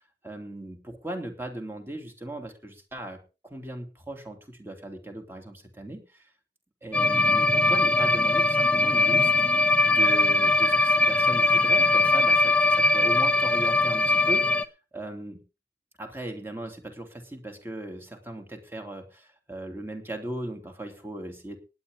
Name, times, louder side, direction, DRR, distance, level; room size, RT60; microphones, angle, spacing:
voice 1, 0.2-3.2 3.5-6.3 6.8-9.3 9.9-14.4 14.9-15.4 16.0-21.6, right 1 dB, 10° right, 4 dB, 2.8 m, -37 dB
sound 1, 6.9-14.6, left 2 dB, 5° left, 0.8 m, -21 dB
19.0 x 9.7 x 3.7 m, 0.32 s
head